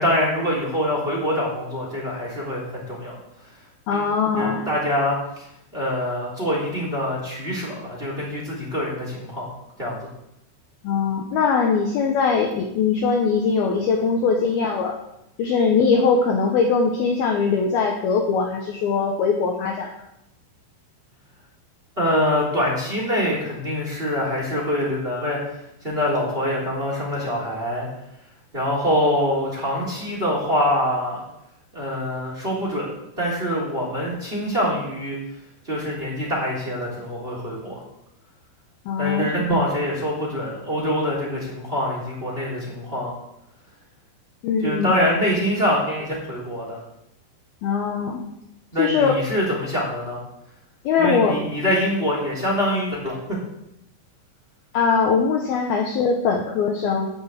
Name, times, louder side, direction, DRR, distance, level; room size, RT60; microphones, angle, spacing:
voice 1, 0.0-3.1 3.9-4.0 4.3-5.5 5.7-9.5 9.8-10.1 22.0-27.9 28.5-31.2 31.7-35.2 35.6-37.8 39.0-43.1 44.6-46.8 48.7-50.2 51.0-53.4, equal, 15° right, -3 dB, 2.6 m, -24 dB
voice 2, 3.9-4.6 10.8-15.0 15.4-19.9 38.9-39.3 44.4-44.9 47.6-48.2 48.8-49.1 50.8-51.4 54.7-57.1, left 5 dB, 80° left, 2 dB, 2.2 m, -21 dB
13.0 x 6.1 x 8.3 m, 0.84 s
omnidirectional pair, 5.9 m